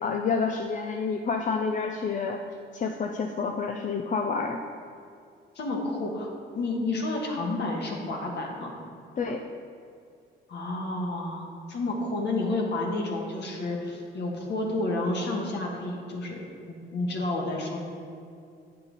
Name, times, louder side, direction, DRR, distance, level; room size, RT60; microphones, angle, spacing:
voice 1, 0.0-2.4 2.7-4.6 9.2-9.4, left 5 dB, 40° left, 4 dB, 0.5 m, -28 dB
voice 2, 5.5-8.7 10.5-16.4 16.7-17.8, left 2 dB, 60° left, 0 dB, 1.5 m, -30 dB
8.8 x 5.6 x 4.0 m, 2.4 s
cardioid pair, 90°, 20 cm